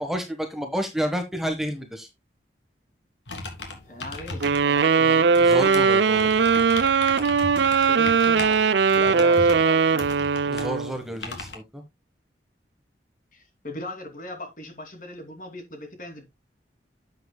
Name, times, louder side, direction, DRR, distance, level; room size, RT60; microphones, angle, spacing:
voice 1, 0.0-2.1 5.0-6.5 9.0-9.6 10.5-11.8, equal, ahead, 1.3 m, -31 dB
sound 1, 3.3-11.6, left 3 dB, 85° left, 3.0 m, -38 dB
voice 2, 3.6-5.4 7.7-8.7 8.9-10.2 13.3-16.3, left 1 dB, 45° left, 2.7 m, -39 dB
sound 2, 4.4-11.0, right 5 dB, 80° right, 0.5 m, -20 dB
11.5 x 7.9 x 2.2 m
head